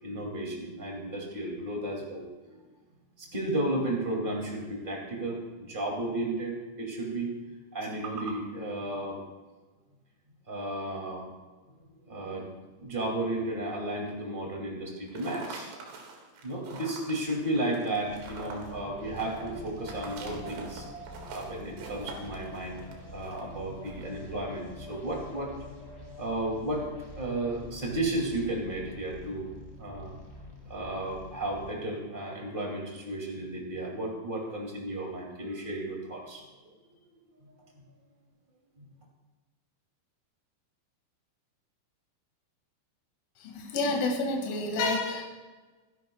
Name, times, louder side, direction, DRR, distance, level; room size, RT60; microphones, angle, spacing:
voice 1, 0.0-2.6 3.2-7.3 7.7-9.2 10.5-11.3 12.1-12.5 12.8-15.7 16.4-20.8 21.3-22.8 23.1-25.6 26.2-26.8 27.2-29.5 29.8-30.1 30.6-36.4 37.4-37.5 38.8-38.9, right 1 dB, 40° right, -1 dB, 0.7 m, -33 dB
sound 1, 15.0-24.1, right 4 dB, 80° right, 4.6 m, -45 dB
sound 2, 18.0-31.7, left 1 dB, 10° left, 2.7 m, -45 dB
voice 2, 43.4-45.2, left 2 dB, 75° left, 0 dB, 4.5 m, -29 dB
25.0 x 11.5 x 2.3 m, 1.3 s
omnidirectional pair, 5.7 m